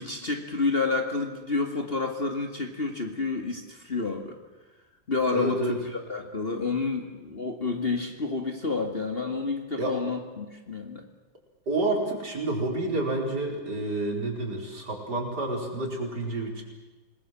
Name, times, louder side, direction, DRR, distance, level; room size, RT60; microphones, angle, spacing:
voice 1, 0.0-4.4 5.1-11.0, left 3 dB, 30° left, 4 dB, 2.2 m, -29 dB
voice 2, 5.3-5.8 9.8-10.0 11.7-16.6, right 2 dB, 55° right, 1 dB, 5.2 m, -29 dB
28.5 x 20.0 x 7.6 m, 1.2 s
omnidirectional pair, 2.1 m